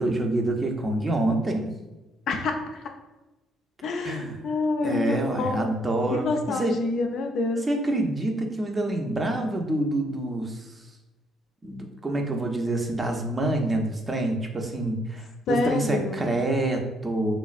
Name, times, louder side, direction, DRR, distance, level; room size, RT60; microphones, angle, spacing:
voice 1, 0.0-1.7 4.0-4.4 4.8-6.8 7.6-10.7 11.6-17.4, right 2 dB, 25° right, 2 dB, 0.6 m, -27 dB
voice 2, 2.3-2.8 3.8-5.8 6.1-7.6 15.5-16.3, left 3 dB, 60° left, 3 dB, 0.4 m, -27 dB
3.1 x 2.4 x 2.4 m, 1.0 s
hypercardioid pair, 55°, 0 cm